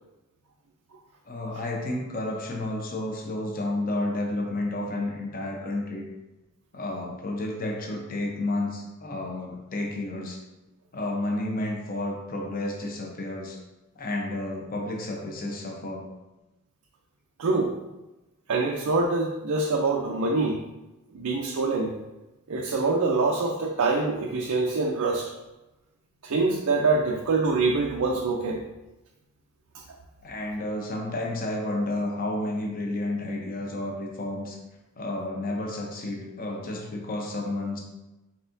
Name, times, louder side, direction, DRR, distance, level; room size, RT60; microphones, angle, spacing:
voice 1, 1.3-6.1 6.7-10.4 10.9-13.6 14.0-16.0 30.2-34.6 35.0-37.8, left 2 dB, 40° left, 0 dB, 0.7 m, -31 dB
voice 2, 17.4-17.7 18.5-20.6 21.1-21.9 22.5-25.3 26.2-28.6, right 3 dB, 90° right, 0 dB, 0.5 m, -25 dB
4.4 x 4.1 x 2.6 m, 1.0 s
head